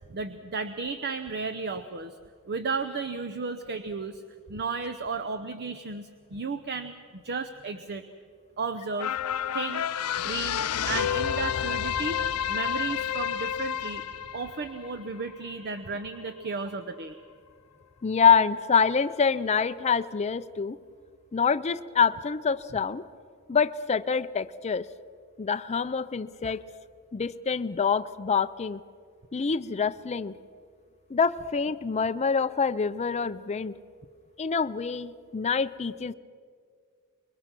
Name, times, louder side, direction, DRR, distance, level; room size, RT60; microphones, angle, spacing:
voice 1, 0.1-2.1 2.5-4.2 4.5-8.0 8.6-9.1 9.5-9.9 10.2-12.2 12.5-14.0 14.3-17.2, right 4 dB, 50° right, 10 dB, 0.7 m, -34 dB
sound 1, 9.0-15.6 16.1-16.2, left 9 dB, 85° left, 0.6 m, -30 dB
voice 2, 18.0-20.8 21.3-23.0 23.5-24.9 25.4-26.6 27.1-28.8 29.3-30.4 31.1-33.8 34.4-36.1, left 6 dB, 30° left, 11 dB, 0.5 m, -26 dB
25.0 x 22.0 x 6.0 m, 2.1 s
head